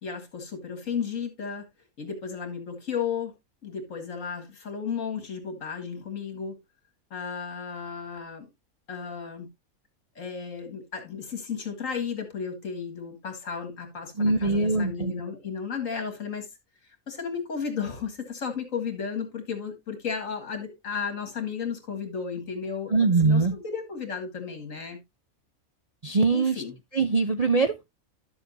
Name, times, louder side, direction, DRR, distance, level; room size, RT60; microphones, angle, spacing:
voice 1, 0.0-1.7 2.0-3.3 3.6-6.6 7.1-8.5 8.9-9.5 10.2-16.5 17.1-25.0 26.3-26.7, left 6 dB, 65° left, 2.3 m, -34 dB
voice 2, 14.2-15.1 22.9-23.5 26.0-26.6 26.9-27.9, right 3 dB, 45° right, 0.5 m, -22 dB
12.0 x 7.0 x 2.6 m
omnidirectional pair, 1.5 m